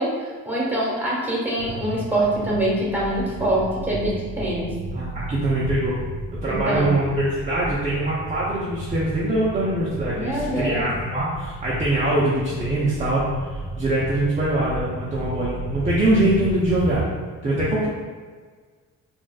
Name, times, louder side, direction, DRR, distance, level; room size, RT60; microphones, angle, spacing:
voice 1, 0.0-4.7 6.4-6.9 10.1-10.9, right 1 dB, 5° right, -6 dB, 1.2 m, -24 dB
sound 1, 1.6-17.0, right 1 dB, 50° right, 0.9 m, -34 dB
voice 2, 4.9-6.0 6.4-17.0 17.4-17.9, right 1 dB, 25° right, -8 dB, 0.7 m, -23 dB
4.0 x 2.5 x 2.3 m, 1.5 s
cardioid pair, 90°, 30 cm